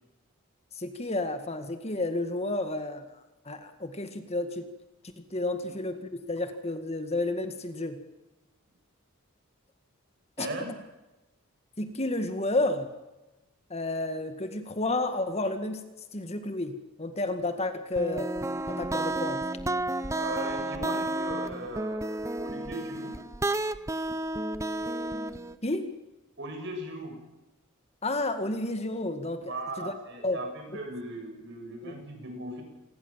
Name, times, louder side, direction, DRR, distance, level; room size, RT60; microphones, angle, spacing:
voice 1, 0.8-3.2 3.5-4.7 5.2-8.0 10.4-10.5 11.8-12.9 13.7-18.3 18.7-19.5 25.6-25.9 28.0-29.9 30.2-30.4 31.8-31.9, left 2 dB, 30° left, 8 dB, 1.9 m, -31 dB
voice 2, 10.4-10.7 20.2-23.3 26.4-27.2 29.4-32.6, right 1 dB, 55° right, 3 dB, 7.7 m, -38 dB
sound 1, 18.0-25.6, right 2 dB, 15° right, 0.8 m, -31 dB
27.0 x 21.5 x 7.5 m, 1.0 s
head